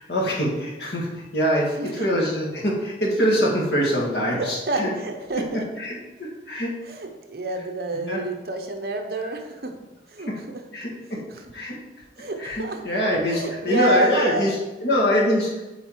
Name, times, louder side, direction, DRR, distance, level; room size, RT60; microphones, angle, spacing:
voice 1, 0.0-4.9 5.5-6.8 7.9-8.2 10.3-10.4 10.7-11.8 12.4-15.6, equal, 65° left, -3 dB, 1.8 m, -24 dB
voice 2, 4.4-5.6 6.9-9.7 10.1-10.6 11.2-11.3 12.2-12.8 13.3-14.5, right 2 dB, 60° right, 4 dB, 0.8 m, -28 dB
8.0 x 4.1 x 4.6 m, 1.1 s
head